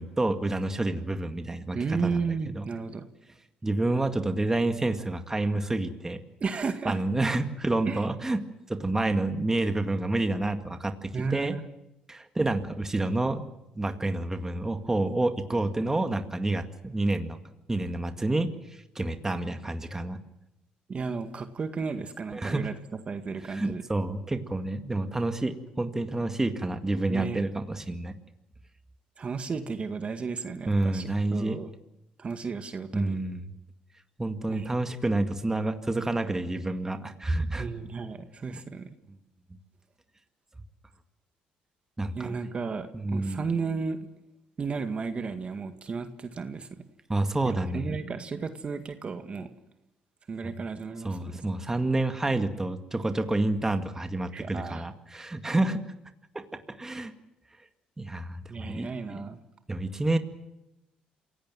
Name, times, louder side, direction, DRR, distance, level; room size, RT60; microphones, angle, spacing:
voice 1, 0.0-2.2 2.6-2.7 3.6-6.2 6.9-8.4 8.7-11.6 12.1-13.4 13.8-17.4 17.7-20.2 22.3-22.7 23.4-28.1 30.7-31.6 32.9-33.5 34.2-37.7 38.5-38.6 42.0-42.4 42.9-43.4 47.1-48.0 51.0-55.8 56.3-57.1 58.0-59.2 59.7-60.2, right 2 dB, 15° right, 7 dB, 2.0 m, -29 dB
voice 2, 1.7-3.1 6.4-7.0 7.9-8.0 11.1-11.6 20.9-22.8 23.1-23.8 27.1-27.4 29.2-31.7 32.2-33.2 34.5-34.7 37.6-39.0 42.2-44.1 44.6-46.7 47.4-49.5 50.3-51.5 54.3-54.9 58.5-59.4, right 5 dB, 40° right, 8 dB, 1.9 m, -33 dB
27.5 x 17.5 x 7.6 m, 0.89 s
cardioid pair, 85°, 3 cm